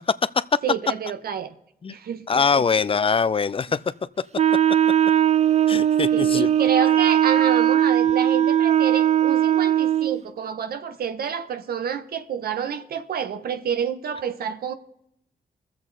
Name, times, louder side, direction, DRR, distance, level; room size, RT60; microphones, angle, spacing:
voice 1, 0.6-1.5 1.9-2.6 6.1-14.7, right 7 dB, 80° right, 0.9 m, -29 dB
voice 2, 2.3-3.8 5.7-6.5, left 5 dB, 35° left, 0.4 m, -22 dB
Wind instrument woodwind instrument, 4.4-10.2, right 10 dB, 45° right, 0.4 m, -19 dB
21.5 x 7.6 x 4.0 m
cardioid pair, 65°, 16 cm